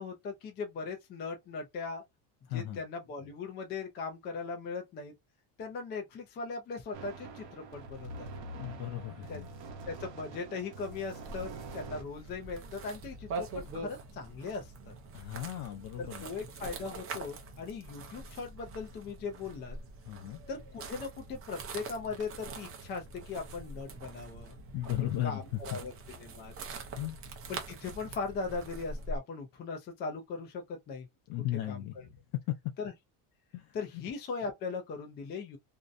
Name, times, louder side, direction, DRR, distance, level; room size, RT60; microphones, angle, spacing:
voice 1, 0.0-2.0 2.5-5.1 5.6-8.3 9.3-9.4 9.9-14.9 16.0-19.8 20.5-24.6 25.2-25.9 26.2-26.5 27.5-31.1 31.7-32.1 32.8-32.9 33.7-35.6, left 4 dB, 25° left, 0.3 m, -39 dB
voice 2, 2.5-2.8 8.6-9.5 15.1-16.3 20.1-20.4 24.7-25.6 27.0-27.2 31.3-32.2 32.5-32.6 33.5-33.8, left 13 dB, 70° left, 0.6 m, -36 dB
sound 1, 6.9-12.0, right 3 dB, 60° right, 0.9 m, -45 dB
sound 2, 11.2-29.2, right 3 dB, 30° right, 0.5 m, -44 dB
2.7 x 2.1 x 2.4 m
cardioid pair, 160°, 44 cm